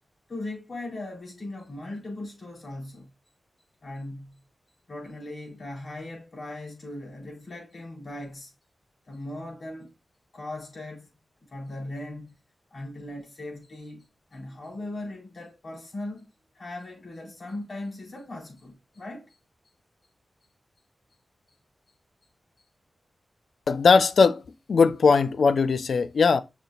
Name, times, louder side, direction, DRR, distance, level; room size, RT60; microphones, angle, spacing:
voice 1, 0.3-3.1 3.8-4.4 4.9-8.5 9.1-9.9 10.3-11.1 11.5-12.4 12.7-19.3, left 1 dB, 55° left, 4.3 m, -39 dB
voice 2, 23.7-24.4 24.7-26.4, left 5 dB, 75° left, 0.6 m, -19 dB
6.8 x 6.1 x 2.4 m
cardioid pair, 70°, 0 cm